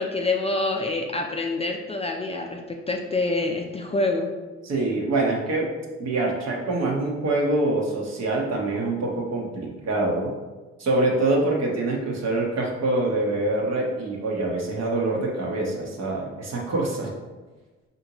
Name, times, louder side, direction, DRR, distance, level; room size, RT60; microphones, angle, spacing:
voice 1, 0.0-4.3, left 2 dB, 20° left, 1 dB, 0.4 m, -26 dB
voice 2, 4.6-5.7 6.0-10.3 10.8-17.1, right 2 dB, 60° right, -2 dB, 1.0 m, -25 dB
4.9 x 2.7 x 2.9 m, 1.2 s
cardioid pair, 90°, 30 cm